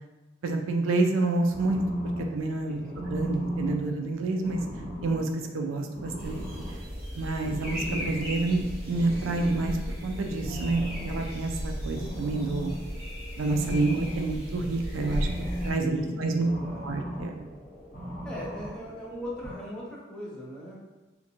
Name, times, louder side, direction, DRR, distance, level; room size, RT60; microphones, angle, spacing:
voice 1, 0.4-1.8 2.3-2.8 3.1-4.6 5.0-5.3 5.5-6.4 7.2-9.8 10.0-12.7 13.4-15.3 15.6-16.5 16.8-17.4, right 3 dB, 90° right, 4 dB, 0.3 m, -28 dB
sound 1, 1.5-19.5, equal, 45° left, 0.9 m, -38 dB
voice 2, 2.6-3.0 10.7-11.0 15.8-16.9 18.2-20.8, equal, 5° left, -6 dB, 0.6 m, -39 dB
sound 2, 6.2-15.7, equal, 50° right, 0.9 m, -36 dB
2.5 x 2.1 x 2.8 m, 1.2 s
head